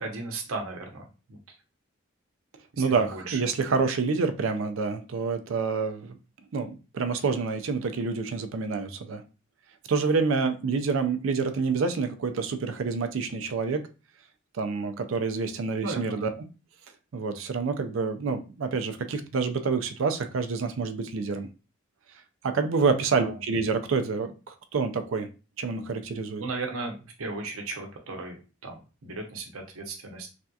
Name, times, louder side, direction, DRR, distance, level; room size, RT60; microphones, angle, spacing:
voice 1, 0.0-1.4 2.7-3.4 15.8-16.3 23.1-23.4 26.4-30.3, right 3 dB, 85° right, 2 dB, 0.8 m, -36 dB
voice 2, 2.8-6.2 6.5-9.2 9.9-13.8 14.6-16.3 17.1-21.5 22.4-25.3 25.6-26.4, right 4 dB, 65° right, 9 dB, 0.4 m, -27 dB
3.3 x 2.7 x 2.3 m, 0.32 s
head